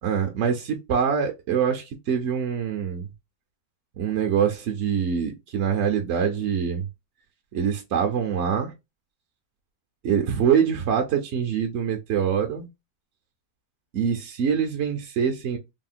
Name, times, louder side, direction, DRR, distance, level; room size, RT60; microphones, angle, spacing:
voice 1, 0.0-3.1 4.0-6.9 7.5-8.7 10.0-12.7 13.9-15.6, right 7 dB, 60° right, 0.8 m, -24 dB
3.5 x 2.1 x 2.4 m
omnidirectional pair, 1.6 m